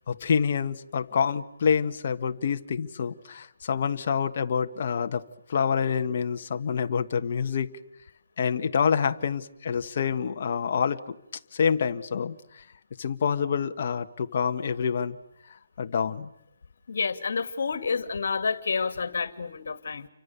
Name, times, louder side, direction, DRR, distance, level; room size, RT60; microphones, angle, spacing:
voice 1, 0.1-5.2 5.5-7.7 8.4-11.2 11.5-12.6 13.0-15.2 15.8-16.3, left 6 dB, 40° left, 7 dB, 1.4 m, -27 dB
voice 2, 16.9-20.1, left 5 dB, 60° left, 11 dB, 2.3 m, -29 dB
30.0 x 25.0 x 6.9 m, 0.80 s
hypercardioid pair, 170°, 0 cm